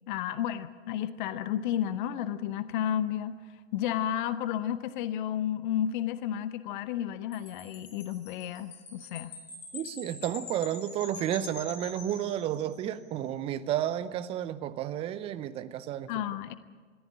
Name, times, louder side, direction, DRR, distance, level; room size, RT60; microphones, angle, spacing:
voice 1, 0.1-3.4 3.7-9.4 16.1-16.5, left 10 dB, 40° left, 14 dB, 0.9 m, -32 dB
Wind chime, 7.3-13.0, left 5 dB, 55° left, 6.7 m, -45 dB
voice 2, 9.7-16.1, right 11 dB, 15° right, 13 dB, 0.6 m, -32 dB
22.0 x 14.5 x 9.9 m, 1.5 s
figure-of-eight pair, 115°, 39 cm